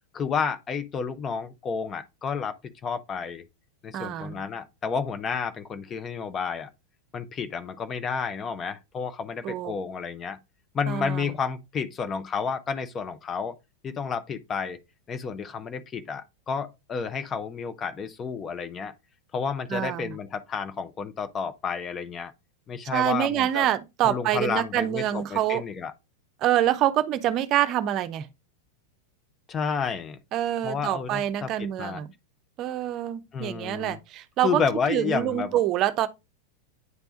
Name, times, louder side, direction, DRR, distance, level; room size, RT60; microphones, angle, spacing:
voice 1, 0.1-2.6 2.8-3.4 3.8-6.7 7.1-10.4 10.7-13.6 13.8-14.8 15.1-18.9 19.3-22.3 22.7-23.7 24.0-25.9 29.5-30.2 30.6-32.0 33.3-34.0 34.4-35.6, left 6 dB, 25° left, 0.8 m, -31 dB
voice 2, 3.9-4.4 9.4-9.8 10.9-11.3 19.7-20.1 22.9-25.6 26.4-28.3 30.3-32.1 32.6-34.6 34.9-36.1, right 12 dB, 35° right, 0.7 m, -26 dB
9.5 x 3.4 x 3.9 m
figure-of-eight pair, 90°, 0 cm